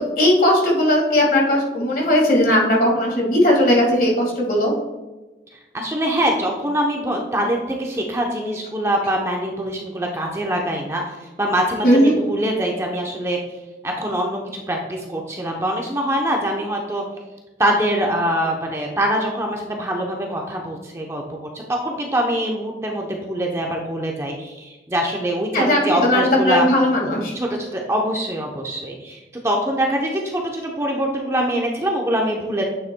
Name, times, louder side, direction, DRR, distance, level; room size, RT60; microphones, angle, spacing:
voice 1, 0.2-4.7 11.8-12.2 25.5-27.3, left 1 dB, 50° left, -1 dB, 1.9 m, -17 dB
voice 2, 5.7-13.4 13.8-17.0 17.6-26.6 27.3-32.6, equal, 15° right, 0 dB, 0.7 m, -24 dB
8.6 x 7.2 x 2.2 m, 1.1 s
head